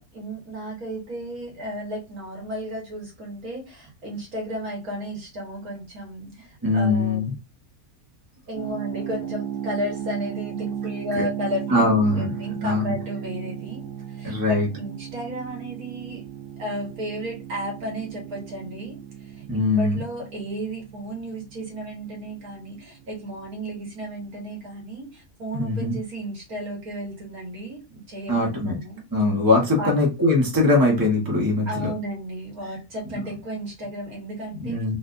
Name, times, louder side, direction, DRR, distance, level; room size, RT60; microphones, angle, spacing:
voice 1, 0.0-7.2 8.5-16.3 16.6-29.0 29.8-30.0 31.7-34.8, equal, 80° right, -1 dB, 2.0 m, -34 dB
voice 2, 6.6-7.3 11.1-11.2 11.7-12.3 12.6-12.9 14.2-14.7 19.5-20.0 25.5-26.0 28.3-28.8 29.1-31.9 33.1-33.2 34.5-34.9, left 2 dB, 15° right, -1 dB, 1.2 m, -21 dB
sound 1, 8.6-23.3, right 9 dB, 60° right, 1.0 m, -35 dB
4.1 x 2.6 x 2.5 m, 0.27 s
omnidirectional pair, 1.5 m